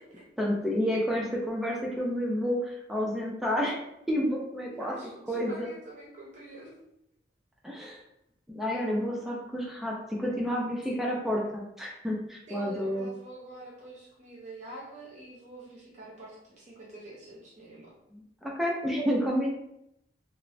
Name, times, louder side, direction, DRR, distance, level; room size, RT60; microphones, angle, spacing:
voice 1, 0.4-3.8 4.1-5.7 7.6-8.0 8.5-13.1 18.1-19.5, equal, ahead, -3 dB, 0.3 m, -30 dB
voice 2, 4.7-6.7 10.9-11.1 12.5-17.9, right 1 dB, 40° right, -5 dB, 0.7 m, -46 dB
3.0 x 2.0 x 2.5 m, 0.80 s
head